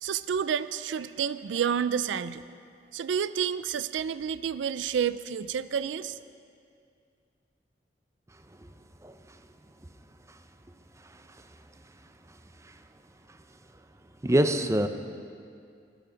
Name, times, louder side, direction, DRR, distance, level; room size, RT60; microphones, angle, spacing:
voice 1, 0.0-2.4 2.9-6.2, right 7 dB, 90° right, 15 dB, 0.4 m, -29 dB
voice 2, 14.2-14.9, right 1 dB, 15° right, 8 dB, 0.6 m, -23 dB
21.0 x 9.2 x 5.1 m, 2.4 s
head